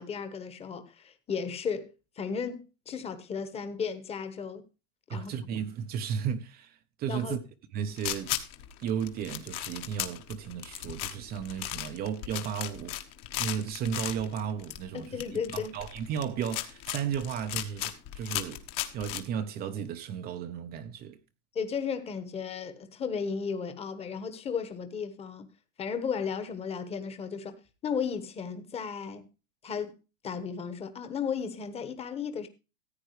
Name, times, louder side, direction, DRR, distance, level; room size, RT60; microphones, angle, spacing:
voice 1, 0.0-4.6 5.1-5.3 7.1-7.4 14.9-15.7 21.5-25.5 25.8-27.5 27.8-29.3 29.6-30.0 30.2-32.5, left 6 dB, 15° left, 1.2 m, -34 dB
voice 2, 5.1-7.4 7.7-8.4 8.8-13.0 13.4-21.2, right 8 dB, 25° right, 0.7 m, -34 dB
sound 1, 8.0-19.2, left 13 dB, 45° left, 1.4 m, -36 dB
14.5 x 9.0 x 3.1 m
supercardioid pair, 160°, 36 cm